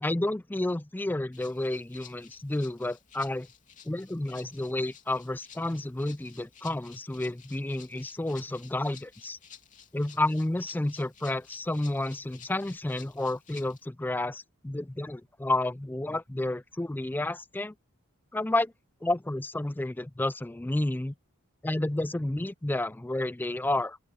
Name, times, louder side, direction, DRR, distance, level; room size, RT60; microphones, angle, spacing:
voice 1, 0.0-3.5 3.9-9.4 9.9-17.7 18.3-18.7 19.0-21.1 21.6-24.0, left 1 dB, 10° left, 0.3 m, -31 dB
Rattle (instrument), 1.3-13.9, left 8 dB, 35° left, 2.9 m, -54 dB
open air
head